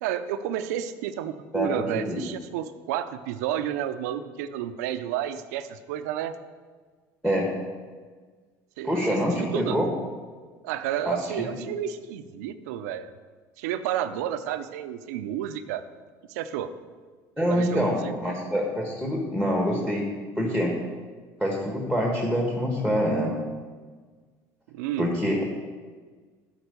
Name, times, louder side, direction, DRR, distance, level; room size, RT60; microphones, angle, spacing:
voice 1, 0.0-6.4 8.8-9.8 10.6-13.1 13.6-15.8 16.3-16.7 17.5-18.1 24.7-25.1, right 10 dB, 90° right, 11 dB, 0.5 m, -31 dB
voice 2, 8.8-9.9 11.0-11.4 17.4-20.1 20.4-20.7 21.4-23.3 25.0-25.4, equal, 5° left, -1 dB, 1.4 m, -25 dB
8.7 x 4.5 x 6.8 m, 1.5 s
supercardioid pair, 100°, 9 cm